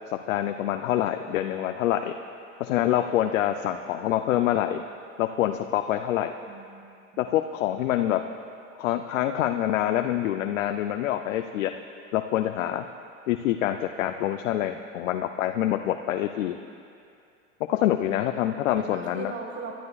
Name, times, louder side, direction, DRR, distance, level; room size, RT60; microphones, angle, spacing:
voice 1, 0.1-2.2 2.6-4.8 5.2-6.3 7.2-8.2 8.8-11.7 12.1-12.8 13.3-16.6 17.7-19.3, left 12 dB, 80° left, 7 dB, 0.6 m, -26 dB
voice 2, 6.5-6.9 7.1-7.2 18.3-19.8, right 4 dB, 30° right, 2 dB, 1.6 m, -39 dB
28.0 x 12.0 x 2.4 m, 2.5 s
hypercardioid pair, 95°, 38 cm